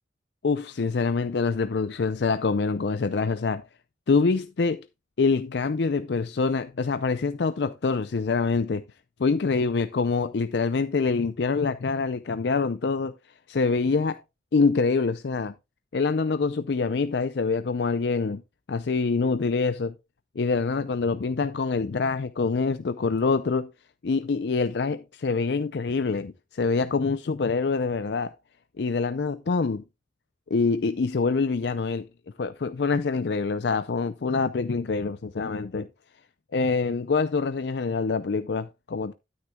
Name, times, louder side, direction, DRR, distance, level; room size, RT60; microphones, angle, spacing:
voice 1, 0.4-3.6 4.1-4.9 5.2-8.8 9.2-13.1 13.5-14.2 14.5-15.5 15.9-18.4 18.7-19.9 20.4-23.7 24.0-28.3 28.8-29.8 30.5-32.1 32.4-35.9 36.5-39.1, left 4 dB, 65° left, 0.5 m, -25 dB
12.0 x 9.6 x 2.3 m
head